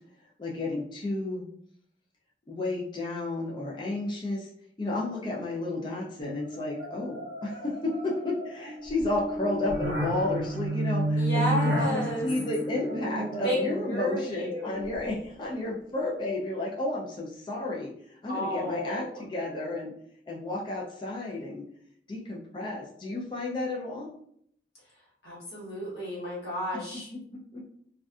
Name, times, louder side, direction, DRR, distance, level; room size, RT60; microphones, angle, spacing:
voice 1, 0.4-1.5 2.5-4.5 4.8-17.9 18.2-19.9 20.3-21.7 22.1-24.1 27.5-27.6, left 2 dB, 25° left, -3 dB, 0.4 m, -32 dB
sound 1, 6.2-15.3, right 1 dB, 55° right, 0.6 m, -32 dB
voice 2, 11.1-12.3 13.4-13.6 13.8-14.6 18.3-19.2 25.2-27.1, equal, 70° left, -6 dB, 1.0 m, -32 dB
2.5 x 2.3 x 2.3 m, 0.67 s
head